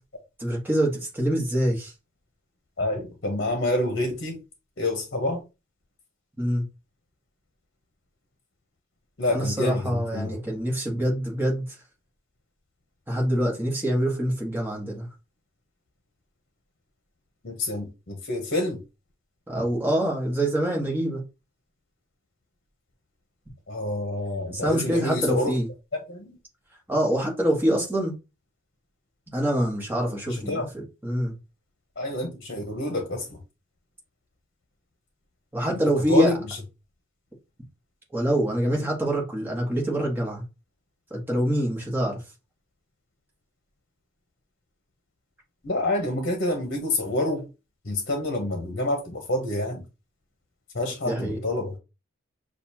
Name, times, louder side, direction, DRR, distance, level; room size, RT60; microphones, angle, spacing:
voice 1, 0.4-1.9 6.4-6.6 9.3-11.8 13.1-15.1 19.5-21.2 24.5-25.7 26.9-28.1 29.3-31.3 35.5-36.3 38.1-40.4 41.1-42.2 51.0-51.4, right 1 dB, 10° right, 1.3 m, -25 dB
voice 2, 2.8-4.4 4.8-5.4 9.2-10.4 17.4-18.8 23.7-25.6 26.1-26.3 30.3-30.6 32.0-33.4 36.1-36.6 45.6-47.5 47.8-49.8 50.7-51.8, left 1 dB, 55° left, 1.0 m, -27 dB
6.5 x 2.4 x 2.8 m
head